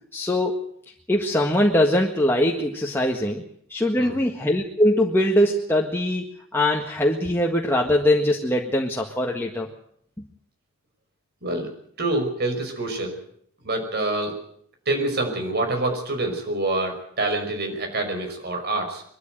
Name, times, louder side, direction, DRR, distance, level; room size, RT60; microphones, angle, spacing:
voice 1, 0.1-0.7 1.1-3.4 3.7-6.3 6.5-9.7, left 1 dB, 10° left, -1 dB, 1.7 m, -22 dB
voice 2, 11.4-11.7 12.0-13.2 13.6-14.4 14.9-19.0, right 2 dB, 55° right, 5 dB, 5.4 m, -26 dB
22.0 x 13.0 x 9.2 m, 0.67 s
head